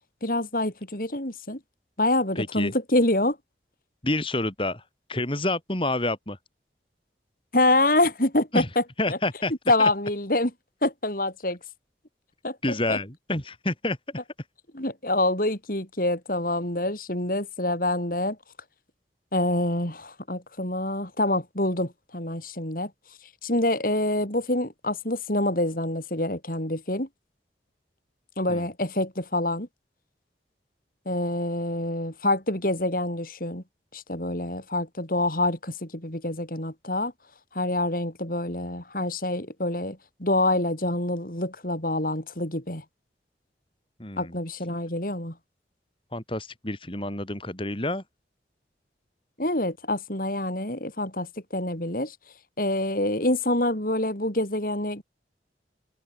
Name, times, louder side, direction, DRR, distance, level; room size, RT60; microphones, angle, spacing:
voice 1, 0.2-1.6 2.0-3.4 7.5-9.2 9.7-10.5 10.8-11.6 12.4-13.0 14.7-18.4 19.3-22.9 23.4-27.1 28.4-29.7 31.0-33.6 33.9-37.1 37.5-42.8 44.2-45.3 49.4-52.1 52.6-55.0, left 1 dB, 50° left, 5.0 m, -26 dB
voice 2, 2.4-2.7 4.0-4.8 5.1-6.4 8.5-8.7 9.0-9.5 9.8-9.9 12.6-14.0 28.5-28.7 44.0-44.3 46.1-48.0, left 2 dB, 30° left, 4.1 m, -28 dB
open air
head